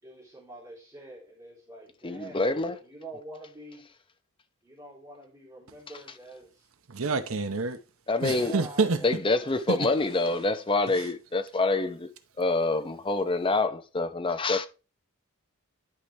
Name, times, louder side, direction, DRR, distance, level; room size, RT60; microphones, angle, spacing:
voice 1, 0.0-3.8 4.6-6.7 8.3-9.6 10.0-10.1, right 3 dB, 15° right, 3.0 m, -46 dB
voice 2, 2.0-2.8 8.1-8.5 9.0-12.1 12.4-14.7, left 3 dB, 25° left, 0.7 m, -26 dB
voice 3, 6.9-7.8 8.2-9.0 9.7-9.9 10.9-11.0, right 4 dB, 65° right, 0.8 m, -28 dB
11.0 x 5.0 x 3.2 m
head